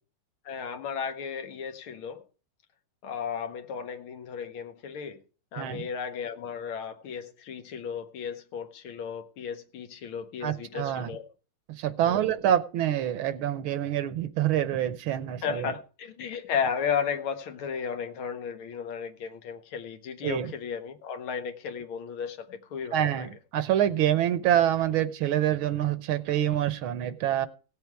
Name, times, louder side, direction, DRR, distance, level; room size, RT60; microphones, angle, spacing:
voice 1, 0.5-2.2 3.0-5.2 5.5-11.3 12.1-12.4 15.4-23.3, left 7 dB, 80° left, 1.8 m, -34 dB
voice 2, 5.6-5.9 10.4-11.1 11.8-15.7 20.2-20.5 22.9-27.5, right 11 dB, 80° right, 1.6 m, -26 dB
17.0 x 6.9 x 4.6 m
omnidirectional pair, 2.3 m